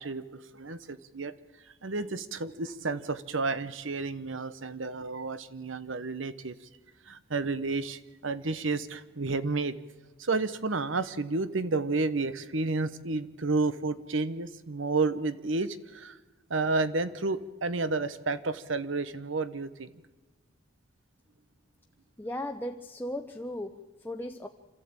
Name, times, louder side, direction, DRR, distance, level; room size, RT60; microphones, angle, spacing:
voice 1, 0.0-1.3 1.8-6.6 7.1-9.8 10.2-16.2 16.5-19.9, right 3 dB, 85° right, 13 dB, 1.1 m, -31 dB
voice 2, 22.2-24.5, left 1 dB, 10° left, 4 dB, 0.8 m, -37 dB
26.5 x 14.0 x 8.8 m, 1.3 s
head